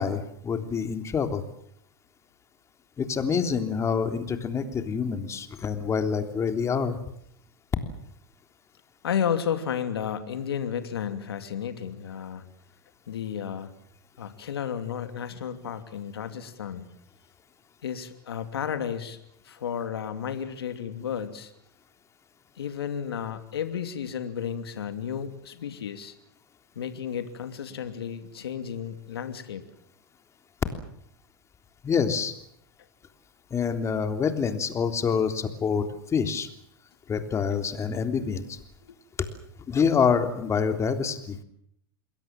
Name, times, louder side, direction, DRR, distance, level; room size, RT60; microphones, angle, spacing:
voice 1, 0.0-1.4 3.0-7.0 31.8-32.3 33.5-35.9 36.1-36.5 37.1-38.6 39.7-41.4, left 6 dB, 25° left, 7 dB, 3.4 m, -26 dB
voice 2, 9.0-12.4 13.1-13.7 14.2-16.9 17.8-19.2 19.4-21.5 22.6-26.1 26.7-29.6 38.8-39.0, left 8 dB, 85° left, 8 dB, 2.7 m, -32 dB
28.0 x 21.5 x 7.6 m, 0.71 s
hypercardioid pair, 110°, 13 cm